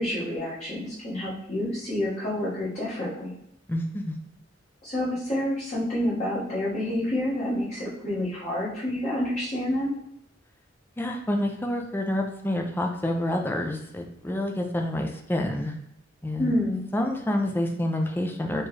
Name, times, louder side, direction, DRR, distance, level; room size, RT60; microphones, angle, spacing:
voice 1, 0.0-3.3 4.8-9.9 16.4-16.8, left 1 dB, 40° left, -10 dB, 1.3 m, -28 dB
voice 2, 3.7-4.2 11.0-15.7 16.2-16.5 16.9-18.7, left 1 dB, 10° left, 3 dB, 0.4 m, -28 dB
4.3 x 3.0 x 3.3 m, 0.75 s
head